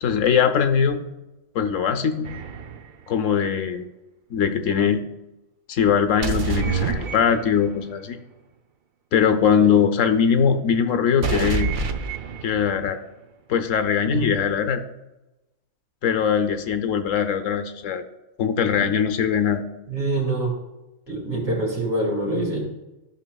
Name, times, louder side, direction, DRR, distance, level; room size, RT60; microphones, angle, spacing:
voice 1, 0.0-1.0 1.5-2.3 3.1-3.9 4.3-5.0 5.7-8.2 9.1-11.7 12.4-13.0 13.5-14.8 16.0-18.0 18.4-19.6, left 7 dB, 70° left, 8 dB, 1.0 m, -21 dB
sound 1, 2.2-2.9 6.2-7.8 11.2-12.8, right 5 dB, 55° right, 0.6 m, -27 dB
voice 2, 19.9-20.5 21.1-22.6, right 2 dB, 85° right, -2 dB, 2.8 m, -25 dB
13.5 x 5.9 x 2.3 m, 1.0 s
omnidirectional pair, 1.4 m